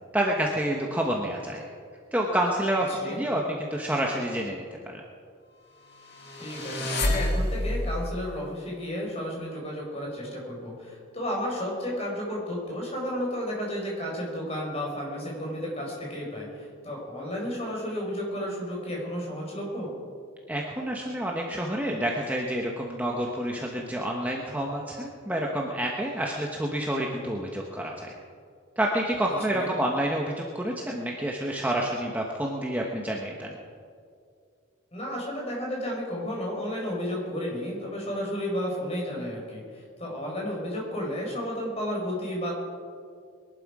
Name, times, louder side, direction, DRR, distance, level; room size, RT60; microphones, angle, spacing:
voice 1, 0.1-1.6 2.1-5.0 20.5-28.1 28.8-33.5, right 1 dB, 10° right, -1 dB, 1.1 m, -28 dB
voice 2, 2.9-3.2 6.4-19.9 29.5-29.7 34.9-42.5, equal, 30° left, -2 dB, 4.6 m, -32 dB
sound 1, 6.2-7.9, left 1 dB, 50° left, 1.9 m, -27 dB
22.0 x 11.5 x 4.9 m, 2.2 s
head